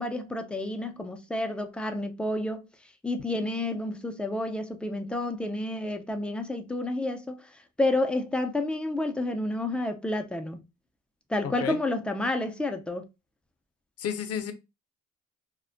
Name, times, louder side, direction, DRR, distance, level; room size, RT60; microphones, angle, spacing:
voice 1, 0.0-2.6 3.0-7.5 7.8-10.6 11.3-13.0, left 1 dB, 5° left, 0.3 m, -30 dB
voice 2, 11.4-11.8 14.0-14.5, left 8 dB, 55° left, 0.5 m, -32 dB
2.4 x 2.1 x 2.4 m
cardioid pair, 90°, 30 cm